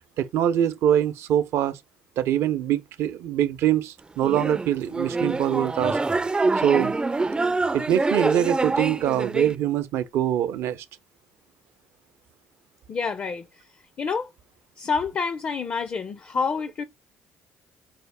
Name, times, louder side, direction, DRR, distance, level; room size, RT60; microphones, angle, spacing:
voice 1, 0.2-1.8 2.2-6.0 6.6-6.9 7.7-10.8, right 10 dB, 70° right, 0.5 m, -23 dB
sound 1, 4.2-9.5, right 3 dB, 20° right, 0.4 m, -25 dB
voice 2, 12.9-13.5 14.0-14.3 14.8-16.8, left 5 dB, 40° left, 0.5 m, -27 dB
5.5 x 2.1 x 3.4 m
hypercardioid pair, 65°, 5 cm